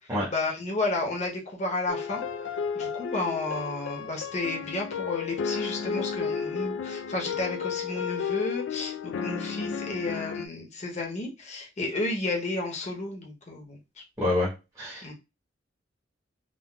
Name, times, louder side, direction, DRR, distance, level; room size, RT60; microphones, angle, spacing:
voice 1, 0.3-2.2 2.7-14.0 15.0-15.1, left 2 dB, 40° left, -1 dB, 0.8 m, -32 dB
sound 1, 1.9-10.5, left 6 dB, 70° left, 0.4 m, -33 dB
voice 2, 14.2-14.5 14.8-15.1, left 1 dB, 20° right, -7 dB, 1.2 m, -27 dB
3.8 x 2.5 x 2.3 m, 0.27 s
head